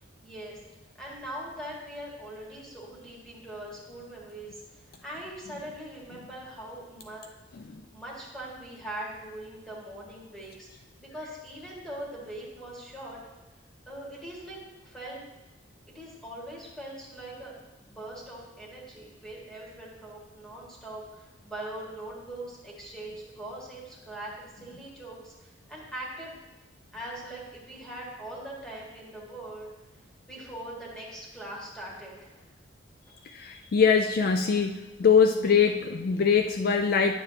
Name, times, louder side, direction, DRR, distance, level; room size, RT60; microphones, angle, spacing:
voice 1, 0.2-0.6 1.0-7.3 7.9-13.2 13.9-15.2 15.9-26.4 26.9-29.7 30.3-32.5, right 1 dB, 5° left, -5 dB, 1.8 m, -41 dB
voice 2, 33.3-37.2, left 6 dB, 50° left, 6 dB, 0.3 m, -23 dB
10.0 x 6.9 x 2.8 m, 1.1 s
head